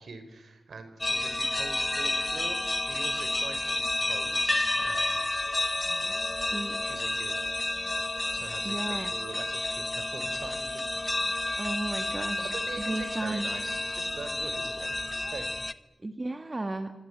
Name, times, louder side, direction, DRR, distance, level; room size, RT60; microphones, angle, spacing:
voice 1, 0.0-5.2 6.8-7.4 8.3-11.1 11.4-11.8 12.4-15.4, right 4 dB, 70° right, 9 dB, 4.2 m, -44 dB
sound 1, 1.0-15.7, left 2 dB, 20° left, 1.0 m, -30 dB
voice 2, 8.6-9.1 11.6-12.5 12.8-13.5 16.0-16.9, right 2 dB, 25° right, 8 dB, 1.8 m, -34 dB
25.5 x 25.0 x 9.1 m, 1.0 s
wide cardioid pair, 105°, 0 cm